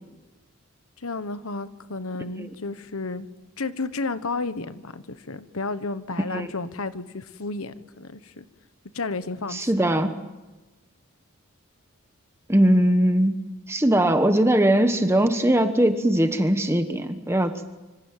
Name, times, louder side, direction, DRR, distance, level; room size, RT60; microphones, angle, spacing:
voice 1, 1.0-3.3 3.6-8.4 8.9-9.6, left 3 dB, 75° left, 12 dB, 1.3 m, -32 dB
voice 2, 9.5-10.1 12.5-13.4 13.7-17.6, right 1 dB, 10° right, 8 dB, 1.1 m, -20 dB
26.0 x 25.5 x 7.5 m, 1.1 s
head